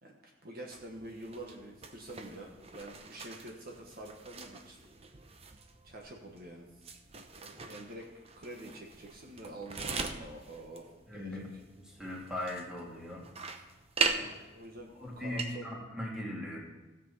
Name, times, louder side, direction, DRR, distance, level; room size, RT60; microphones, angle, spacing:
voice 1, 0.0-4.8 5.8-6.7 7.4-8.1 8.4-10.9 11.1-11.6 14.0-14.9 15.2-15.7, right 1 dB, 50° right, 0 dB, 1.4 m, -47 dB
sound 1, 0.7-15.6, right 4 dB, 35° right, 0.8 m, -41 dB
voice 2, 11.1-11.4 11.8-13.2 15.0-16.6, left 1 dB, 5° right, -4 dB, 2.5 m, -39 dB
16.5 x 7.6 x 4.2 m, 1.1 s
head